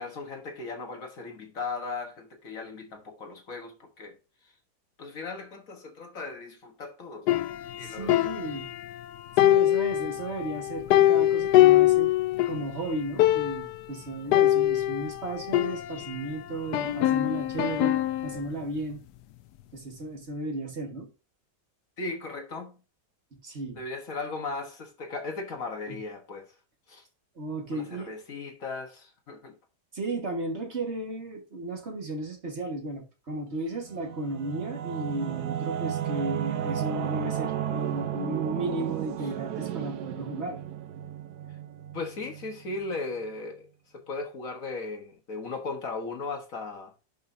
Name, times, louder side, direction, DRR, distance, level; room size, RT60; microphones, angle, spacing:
voice 1, 0.0-4.2 5.0-7.4 7.8-8.3 22.0-22.8 23.7-26.5 26.9-27.0 27.7-29.6 41.9-43.7 43.9-46.9, left 3 dB, 55° left, 1.5 m, -37 dB
sound 1, 7.3-9.0 9.4-12.7 12.9-13.0 13.2-13.8 14.3-16.3 16.7-18.4, left 14 dB, 75° left, 1.1 m, -23 dB
voice 2, 7.8-8.7 9.4-12.1 12.4-19.1 19.7-21.1 23.3-23.8 25.9-26.0 27.4-28.2 29.9-40.6, right 2 dB, 40° right, 1.8 m, -34 dB
Singing / Musical instrument, 33.7-42.9, right 10 dB, 70° right, 1.3 m, -33 dB
11.0 x 5.5 x 2.7 m
omnidirectional pair, 1.8 m